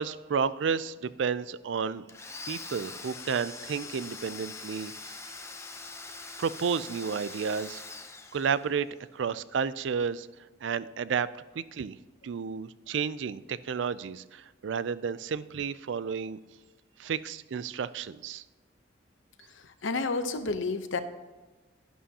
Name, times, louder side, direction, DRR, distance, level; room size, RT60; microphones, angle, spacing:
voice 1, 0.0-2.1 2.5-5.1 6.4-7.8 8.3-8.9 9.1-10.3 10.6-11.3 11.5-12.0 12.2-16.4 17.0-18.4, right 6 dB, 70° right, 16 dB, 0.4 m, -31 dB
Domestic sounds home sounds, 2.1-8.9, left 3 dB, 15° left, 0.6 m, -43 dB
voice 2, 19.5-21.0, left 3 dB, 85° left, 10 dB, 0.8 m, -31 dB
11.0 x 11.0 x 2.8 m, 1.3 s
head